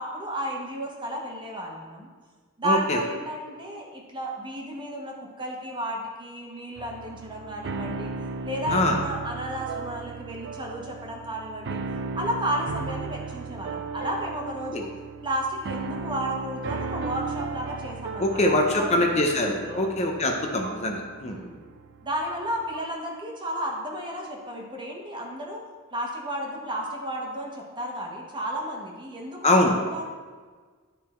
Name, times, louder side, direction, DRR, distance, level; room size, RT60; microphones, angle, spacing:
voice 1, 0.0-2.1 2.6-8.1 8.4-11.8 12.1-14.9 15.2-19.9 21.2-21.5 22.0-25.6 25.9-30.1, equal, 20° right, 0 dB, 1.2 m, -33 dB
voice 2, 2.6-3.0 8.7-9.0 14.7-14.8 18.2-21.4 29.4-29.7, left 1 dB, 30° left, 2 dB, 0.7 m, -23 dB
sound 1, 6.8-23.0, right 4 dB, 60° right, 0.4 m, -36 dB
11.0 x 3.8 x 4.3 m, 1.5 s
head